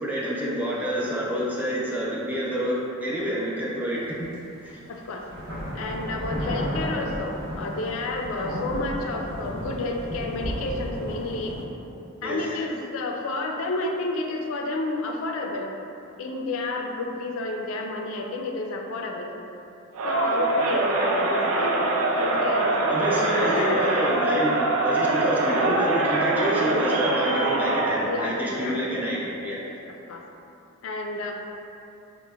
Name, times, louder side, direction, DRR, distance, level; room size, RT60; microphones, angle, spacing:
voice 1, 0.0-4.3 4.6-4.8 12.2-12.4 22.9-24.6 24.8-29.6, equal, 10° right, -6 dB, 0.4 m, -28 dB
sound 1, 4.3-4.4 5.2-11.6, equal, 60° right, 0.9 m, -33 dB
voice 2, 4.9-5.3 5.7-11.6 12.2-15.7 16.2-19.6 20.0-21.8 22.1-22.8 23.1-23.9 24.3-24.6 28.1-28.8 29.1-29.2 29.6-30.2 30.8-31.3, left 2 dB, 75° left, 1 dB, 0.3 m, -30 dB
Crowd, 19.9-28.1, right 2 dB, 85° right, 0.4 m, -24 dB
4.9 x 2.0 x 2.2 m, 2.7 s
head